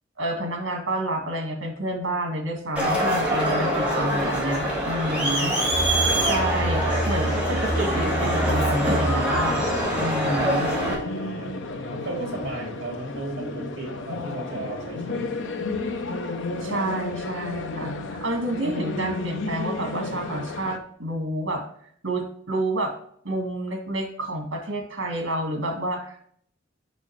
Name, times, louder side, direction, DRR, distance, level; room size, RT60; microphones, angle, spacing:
voice 1, 0.2-5.5 6.2-10.7 16.6-21.6 22.0-22.9 23.2-26.2, right 1 dB, 80° right, 3 dB, 1.9 m, -29 dB
Crowd, 2.8-10.9, equal, 5° right, 2.4 m, -24 dB
voice 2, 5.6-7.2 10.7-11.5 11.9-15.8, right 2 dB, 60° right, -2 dB, 3.1 m, -36 dB
sound 1, 7.9-20.8, left 3 dB, 80° left, 0.7 m, -32 dB
6.4 x 6.2 x 3.2 m, 0.63 s
head